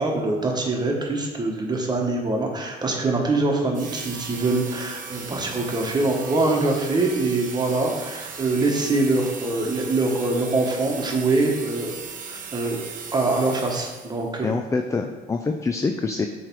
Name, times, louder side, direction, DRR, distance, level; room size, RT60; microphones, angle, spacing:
voice 1, 0.0-11.9 12.3-12.8 13.1-14.5, right 2 dB, 25° right, 1 dB, 1.2 m, -24 dB
sound 1, 3.7-14.3, right 5 dB, 55° right, 0.9 m, -37 dB
voice 2, 14.4-16.3, left 4 dB, 20° left, 5 dB, 0.4 m, -25 dB
7.7 x 3.3 x 4.6 m, 1.3 s
cardioid pair, 110°, 17 cm